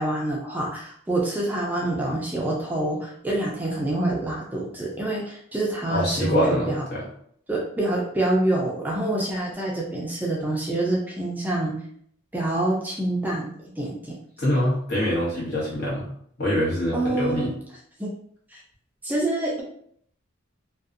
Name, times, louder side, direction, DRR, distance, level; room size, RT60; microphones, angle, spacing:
voice 1, 0.0-6.8 7.5-11.8 12.3-13.5 13.8-14.2 16.9-17.5 18.0-18.1 18.5-18.6 19.0-19.6, right 1 dB, 10° right, -3 dB, 0.4 m, -26 dB
voice 2, 5.9-7.0 14.4-16.1 16.4-17.5, left 1 dB, 55° left, -6 dB, 1.1 m, -24 dB
2.6 x 2.2 x 2.5 m, 0.65 s
head